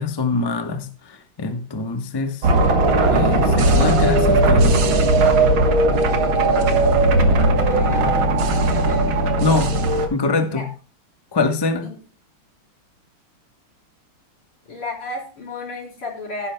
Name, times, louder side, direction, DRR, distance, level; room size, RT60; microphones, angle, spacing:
voice 1, 0.0-2.5 3.1-4.9 9.4-9.8 10.1-10.7 11.3-11.9, left 3 dB, 35° left, 0.4 m, -24 dB
sound 1, 2.4-10.1, right 2 dB, 70° right, 2.1 m, -17 dB
voice 2, 7.7-9.2 10.5-10.6 11.8-11.9 14.7-16.5, left 3 dB, 75° left, 4.7 m, -33 dB
16.0 x 11.0 x 2.2 m
omnidirectional pair, 2.4 m